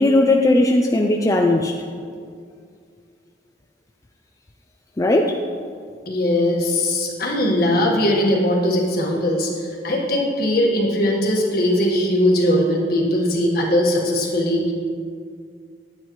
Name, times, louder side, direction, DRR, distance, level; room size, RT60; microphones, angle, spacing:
voice 1, 0.0-1.7 5.0-5.4, left 2 dB, 20° left, 2 dB, 0.4 m, -17 dB
voice 2, 6.0-14.7, left 1 dB, 60° left, -1 dB, 1.5 m, -20 dB
9.6 x 9.4 x 3.1 m, 2.2 s
head